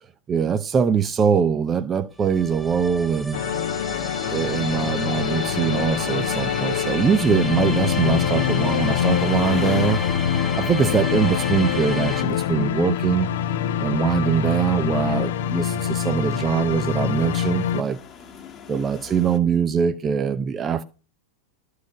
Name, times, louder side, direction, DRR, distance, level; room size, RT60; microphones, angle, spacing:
voice 1, 0.3-3.4 4.3-10.0 10.3-13.3 13.8-18.0 18.7-20.8, right 7 dB, 20° right, 0.6 m, -22 dB
sound 1, 2.2-12.2, left 1 dB, 5° left, 1.0 m, -33 dB
sound 2, 3.3-17.8, left 9 dB, 55° left, 0.8 m, -24 dB
sound 3, 3.7-19.4, left 7 dB, 30° left, 1.4 m, -43 dB
13.0 x 4.8 x 8.0 m
figure-of-eight pair, 90°, 0 cm